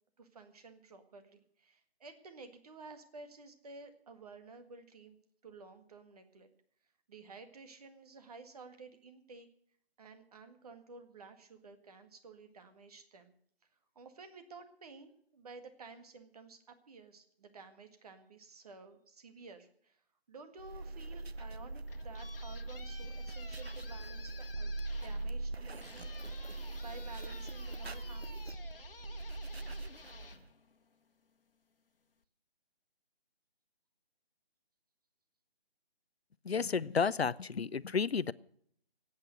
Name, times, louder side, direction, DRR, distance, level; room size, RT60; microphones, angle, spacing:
voice 1, 0.2-5.2 5.4-6.5 7.1-9.5 10.0-13.3 14.0-20.0 20.3-26.1 26.4-28.6, right 4 dB, 40° right, 8 dB, 1.8 m, -53 dB
sound 1, 20.6-30.5, right 2 dB, 85° right, 1.2 m, -41 dB
sound 2, 21.6-31.3, left 4 dB, 60° left, 1.4 m, -54 dB
voice 2, 36.5-38.3, left 5 dB, 85° left, 19 dB, 0.7 m, -31 dB
17.0 x 8.9 x 7.6 m, 0.64 s
figure-of-eight pair, 155°, 31 cm